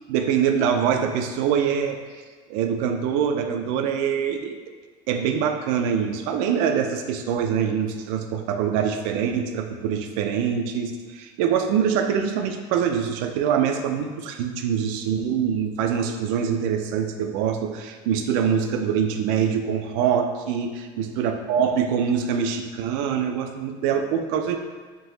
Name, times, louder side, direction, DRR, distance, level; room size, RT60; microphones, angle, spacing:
voice 1, 0.1-2.0 2.5-4.6 5.1-20.7 21.0-24.6, right 7 dB, 85° right, 6 dB, 0.4 m, -24 dB
3.8 x 2.7 x 3.8 m, 1.5 s
cardioid pair, 170°, 14 cm